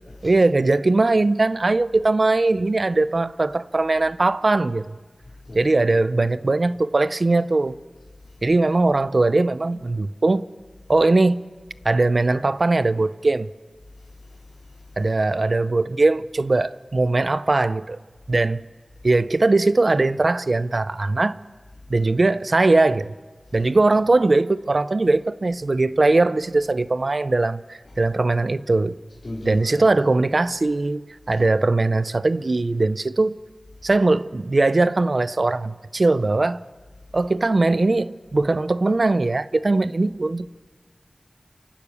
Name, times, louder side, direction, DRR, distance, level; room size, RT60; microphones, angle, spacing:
voice 1, 0.2-5.0 5.5-7.8 8.4-10.4 10.9-11.4 11.8-13.5 15.0-18.0 18.3-18.6 19.0-21.4 21.9-23.1 23.5-29.0 29.5-33.3 33.8-36.6 37.1-40.5, right 2 dB, 65° right, 0.5 m, -20 dB
voice 2, 5.2-5.6 8.2-8.5 13.9-15.0 19.0-19.1 21.8-22.0 23.5-23.6 29.2-29.8 33.8-33.9, left 2 dB, 70° left, 4.2 m, -40 dB
28.5 x 12.0 x 8.4 m
wide cardioid pair, 65°, 0 cm